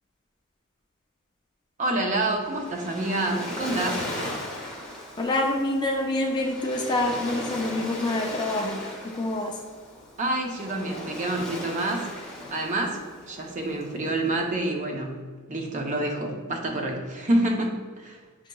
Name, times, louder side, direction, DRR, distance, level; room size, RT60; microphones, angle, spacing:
voice 1, 1.8-4.0 10.2-12.1 12.5-13.0 13.3-15.2 15.5-18.2, right 1 dB, 35° right, 2 dB, 0.6 m, -27 dB
Waves surf, 2.1-14.5, left 1 dB, 5° left, 0.9 m, -37 dB
voice 2, 5.2-9.6, left 2 dB, 20° left, 1 dB, 0.4 m, -27 dB
7.3 x 2.8 x 2.2 m, 1.5 s
head